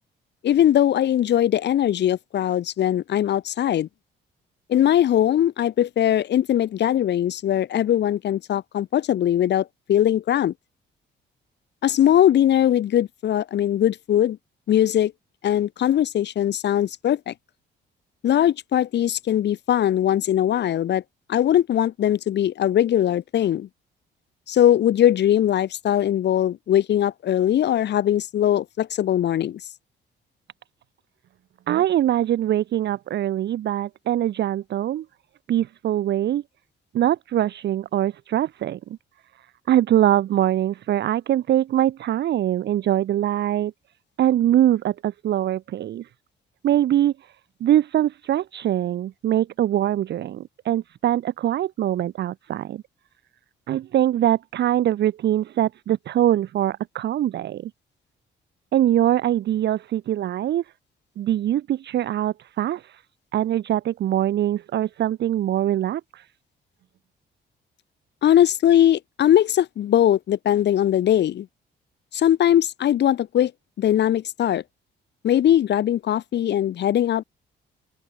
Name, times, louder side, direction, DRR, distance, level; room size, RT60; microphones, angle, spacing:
voice 1, 0.4-3.9 4.7-10.5 11.8-14.4 14.7-15.1 15.4-17.3 18.2-21.0 21.3-23.7 24.5-29.6 68.2-71.5 72.1-73.5 73.8-74.6 75.2-77.2, left 11 dB, 60° left, 0.8 m, -20 dB
voice 2, 31.7-35.1 35.5-36.4 36.9-38.8 39.7-43.7 44.2-46.1 46.6-47.3 47.6-52.8 53.7-57.7 58.7-60.6 61.2-63.0 63.3-66.3, right 12 dB, 60° right, 0.7 m, -23 dB
open air
cardioid pair, 90°, 20 cm